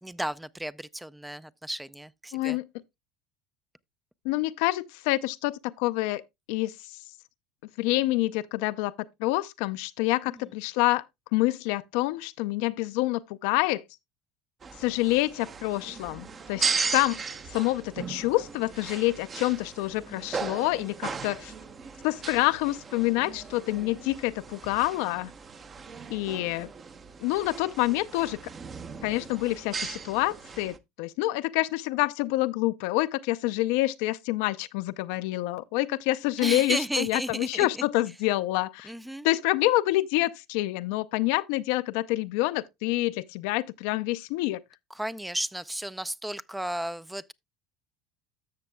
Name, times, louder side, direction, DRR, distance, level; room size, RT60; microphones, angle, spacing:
voice 1, 0.0-2.6 36.4-37.7 38.8-39.3 45.0-47.3, right 1 dB, 5° right, 0.4 m, -33 dB
voice 2, 2.3-2.6 4.2-6.2 6.5-6.7 7.8-8.9 9.2-11.0 11.3-13.8 14.8-17.2 17.5-21.5 22.0-25.3 26.1-26.7 27.2-28.4 29.0-38.9 39.2-44.6, left 18 dB, 70° left, 0.4 m, -27 dB
sound 1, 14.6-30.8, right 5 dB, 30° right, 0.8 m, -37 dB
13.0 x 6.8 x 2.2 m
hypercardioid pair, 90°, 0 cm